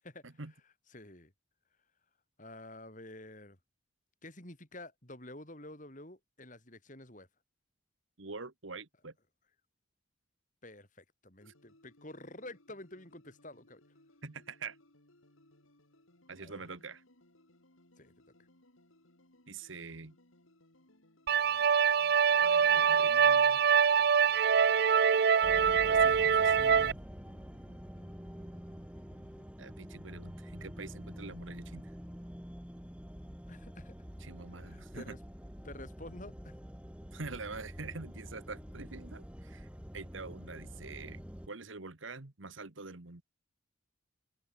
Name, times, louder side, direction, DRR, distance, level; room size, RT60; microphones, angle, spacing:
voice 1, 0.9-1.3 2.4-3.6 4.2-7.3 10.6-13.8 16.4-16.7 18.0-18.1 33.5-33.9 34.6-35.2 35.6-36.6, left 1 dB, 40° left, 5.4 m, -49 dB
voice 2, 8.2-9.1 11.4-11.5 14.2-14.8 16.3-17.0 19.5-20.2 22.4-23.6 25.7-27.0 29.6-31.9 34.2-35.2 37.1-43.2, right 4 dB, 75° right, 1.6 m, -45 dB
sound 1, 11.4-29.5, left 1 dB, 85° left, 5.2 m, -65 dB
sound 2, 21.3-26.9, right 7 dB, 50° right, 0.4 m, -24 dB
sound 3, 25.4-41.5, equal, 5° right, 1.3 m, -47 dB
head